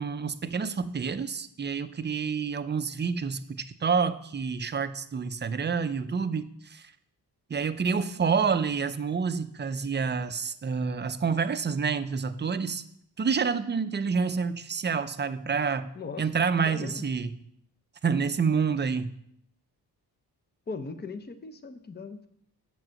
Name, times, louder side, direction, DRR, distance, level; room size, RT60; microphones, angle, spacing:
voice 1, 0.0-6.9 7.5-12.8 13.2-15.9 16.2-17.4 18.0-19.2, right 5 dB, 30° right, 11 dB, 0.5 m, -28 dB
voice 2, 15.9-16.3 16.7-17.1 20.7-22.3, left 4 dB, 25° left, 9 dB, 0.6 m, -38 dB
8.4 x 4.8 x 6.4 m, 0.72 s
wide cardioid pair, 110°, 39 cm